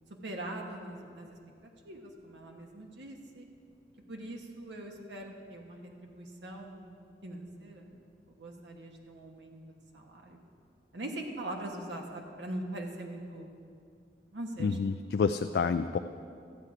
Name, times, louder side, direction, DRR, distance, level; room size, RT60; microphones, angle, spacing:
voice 1, 0.2-3.5 4.1-6.9 7.2-8.1 8.4-10.4 10.9-13.5 14.3-14.8, right 1 dB, 90° right, 1 dB, 1.2 m, -42 dB
voice 2, 14.6-16.0, left 5 dB, 65° left, 8 dB, 0.3 m, -28 dB
14.0 x 7.9 x 4.8 m, 2.4 s
head